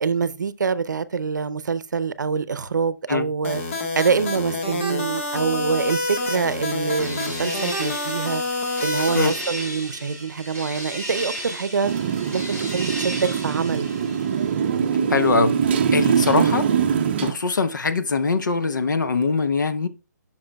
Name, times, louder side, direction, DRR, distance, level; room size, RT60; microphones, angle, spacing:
voice 1, 0.0-3.6 4.0-8.4 8.8-11.9 12.3-13.9, right 5 dB, 80° right, 0.6 m, -25 dB
sound 1, 3.4-9.3, left 2 dB, 40° left, 1.5 m, -27 dB
sound 2, 5.8-14.9, equal, 10° left, 1.8 m, -35 dB
Motorcycle, 11.8-17.3, right 7 dB, 35° right, 0.6 m, -22 dB
voice 2, 15.1-15.5 15.9-16.7 17.2-19.9, left 4 dB, 85° left, 0.9 m, -22 dB
8.8 x 5.9 x 2.3 m
hypercardioid pair, 160°, 10 cm